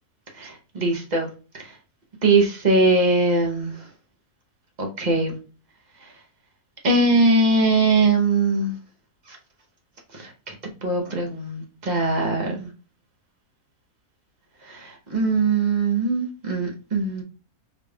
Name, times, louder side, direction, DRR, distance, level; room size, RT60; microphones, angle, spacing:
voice 1, 0.4-1.3 1.5-1.6 2.2-3.7 4.8-5.4 6.8-8.8 9.3-9.4 10.1-10.5 10.8-12.7 14.7-17.2, right 3 dB, 40° right, 2 dB, 0.7 m, -21 dB
3.9 x 3.3 x 2.3 m, 0.35 s
omnidirectional pair, 1.7 m